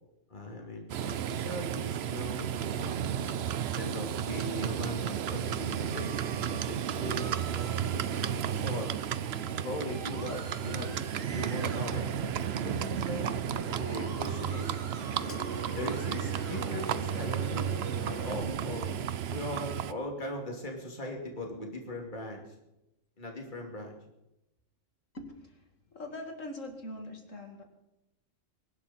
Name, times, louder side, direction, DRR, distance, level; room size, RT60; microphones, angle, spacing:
voice 1, 0.3-0.9 1.3-3.1 3.8-8.1 8.6-8.9 9.6-11.0 11.3-12.0 12.6-13.3 13.7-14.8 15.7-17.7 18.0-18.9 19.3-22.5 23.2-24.0, left 1 dB, 35° left, 1 dB, 2.9 m, -39 dB
Livestock farm animals working animals, 0.9-19.9, right 9 dB, 60° right, 0.8 m, -33 dB
Musical instrument, 5.9-17.9, right 3 dB, 75° right, 2.2 m, -48 dB
Engine, 11.3-18.4, equal, 20° left, 0.4 m, -45 dB
voice 2, 25.1-27.6, left 1 dB, 75° left, 4 dB, 2.7 m, -43 dB
24.0 x 11.5 x 4.3 m, 0.91 s
omnidirectional pair, 1.3 m